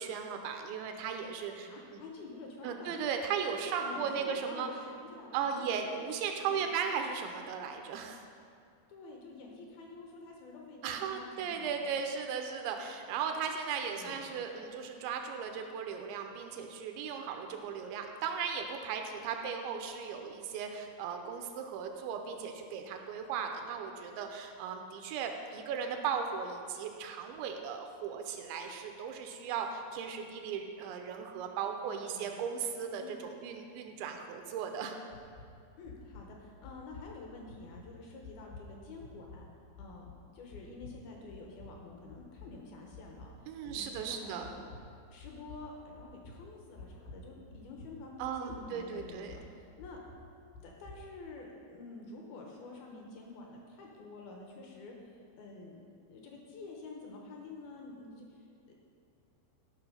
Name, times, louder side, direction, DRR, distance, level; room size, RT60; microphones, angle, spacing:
voice 1, 0.0-2.0 2.6-4.7 5.3-8.2 10.8-34.9 43.5-44.5 48.2-49.4, right 6 dB, 80° right, 4 dB, 2.8 m, -37 dB
voice 2, 1.7-2.9 3.7-6.1 6.4-7.0 8.9-11.9 13.9-14.3 31.8-32.4 33.0-33.2 35.8-39.5 39.8-44.6 45.1-50.0 50.6-55.8 56.1-58.7, left 3 dB, 70° left, 0 dB, 2.4 m, -49 dB
sound 1, 35.1-35.5 35.9-36.3 36.6-37.1 37.5-37.8 38.2-38.7 39.0-39.4 39.8-40.2 40.5-40.9 41.3-41.7 42.1-42.5 42.9-43.3 43.7-44.1 44.4-44.8 45.2-45.6 46.0-46.4 46.8-47.3 47.5-48.0 48.2-48.6 49.0-49.4 49.8-50.2 50.5-51.0, left 4 dB, 90° left, 5.3 m, -50 dB
13.5 x 6.0 x 5.6 m, 2.3 s
omnidirectional pair, 5.4 m